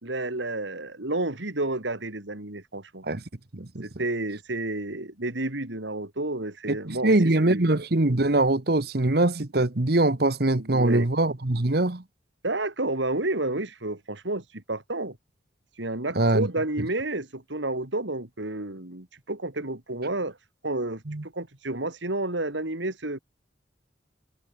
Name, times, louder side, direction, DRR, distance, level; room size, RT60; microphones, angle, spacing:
voice 1, 0.0-3.0 3.8-7.6 10.6-11.1 12.4-15.2 15.8-20.4 20.6-23.2, right 2 dB, 80° right, 3.0 m, -30 dB
voice 2, 3.5-3.8 6.7-12.0 16.1-16.5 21.1-21.2, right 2 dB, 55° right, 1.3 m, -23 dB
head